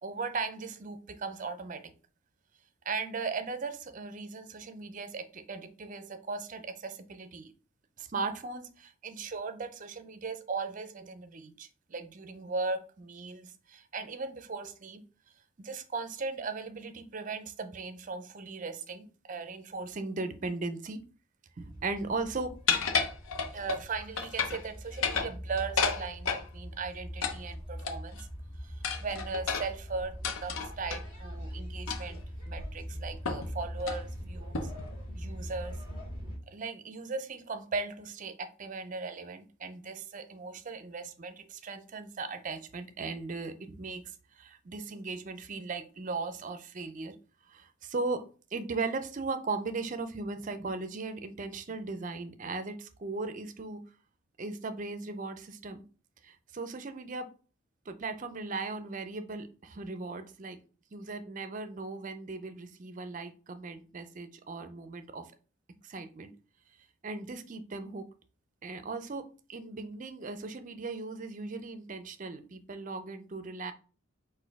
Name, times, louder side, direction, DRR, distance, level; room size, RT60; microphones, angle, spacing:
voice 1, 0.0-1.9 2.8-7.5 8.0-15.0 15.6-21.0 21.6-22.6 23.5-28.3 28.6-34.7 35.1-35.8 36.5-47.2 47.5-48.2 48.5-53.8 54.4-55.8 56.2-57.3 57.9-60.6 60.9-65.3 65.8-66.3 67.0-68.1 68.6-73.7, right 3 dB, 35° right, 9 dB, 0.4 m, -38 dB
sound 1, 21.6-36.4, equal, 35° left, 1.7 m, -42 dB
sound 2, 22.7-23.8 24.2-24.6 24.9-26.5 27.2-28.2 28.8-31.0 31.9-32.2 32.6-32.7 33.2-33.5 33.8-34.0 34.5-34.9, left 5 dB, 75° left, 0.6 m, -31 dB
4.2 x 2.5 x 4.6 m, 0.37 s
head